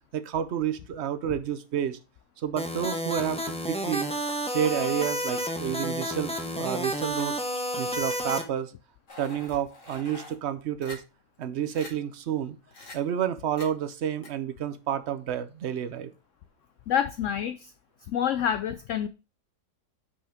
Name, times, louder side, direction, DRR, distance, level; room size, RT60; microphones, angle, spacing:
voice 1, 0.1-2.0 2.4-4.1 4.5-7.4 7.8-8.7 9.2-11.0 11.4-12.6 12.9-16.1, right 9 dB, 55° right, 0.9 m, -30 dB
sound 1, 2.6-8.4, equal, 5° left, 0.8 m, -31 dB
sound 2, 9.1-10.3 10.8-11.0 11.4-11.5 11.7-11.9 12.7-13.0 13.6-13.7 14.2-14.3, left 3 dB, 50° left, 2.4 m, -44 dB
voice 2, 16.9-17.7 18.1-19.1, left 9 dB, 70° left, 0.7 m, -27 dB
5.7 x 5.4 x 5.0 m
omnidirectional pair, 1.7 m